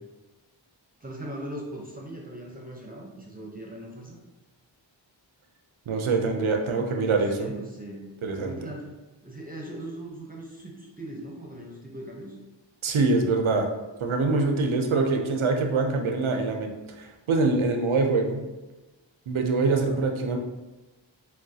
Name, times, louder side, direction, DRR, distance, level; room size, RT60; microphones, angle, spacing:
voice 1, 1.0-4.2 7.0-8.1 8.3-9.0 9.2-12.4 19.7-20.0, right 1 dB, 20° right, -2 dB, 0.7 m, -40 dB
voice 2, 5.9-7.5 8.2-8.6 12.8-13.7 14.0-16.7 17.0-18.4 19.3-20.4, right 3 dB, 90° right, 3 dB, 0.6 m, -24 dB
6.1 x 2.3 x 2.7 m, 1.1 s
wide cardioid pair, 40°, 47 cm